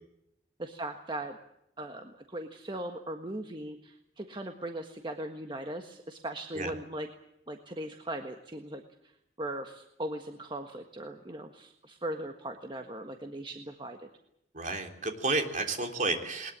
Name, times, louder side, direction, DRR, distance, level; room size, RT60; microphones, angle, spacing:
voice 1, 0.6-1.4 1.8-7.1 7.5-8.8 9.4-14.1, right 1 dB, 25° right, 5 dB, 1.5 m, -39 dB
voice 2, 14.5-16.5, right 3 dB, 45° right, 4 dB, 3.5 m, -31 dB
21.0 x 20.5 x 8.7 m, 0.80 s
head